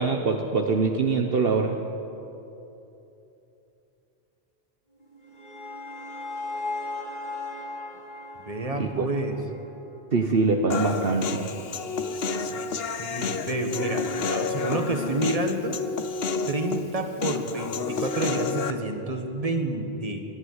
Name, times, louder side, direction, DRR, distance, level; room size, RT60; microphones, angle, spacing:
voice 1, 0.0-1.8 8.7-9.1 10.1-11.5, right 4 dB, 60° right, 3 dB, 1.3 m, -24 dB
sound 1, 5.0-10.2, left 2 dB, 45° left, 2.4 m, -37 dB
voice 2, 8.4-9.4 12.5-12.6 13.0-15.8 16.5-20.2, right 2 dB, 35° right, 5 dB, 1.8 m, -29 dB
Human voice, 10.7-18.7, left 5 dB, 65° left, 1.1 m, -30 dB
25.5 x 11.5 x 9.7 m, 3.0 s
omnidirectional pair, 1.1 m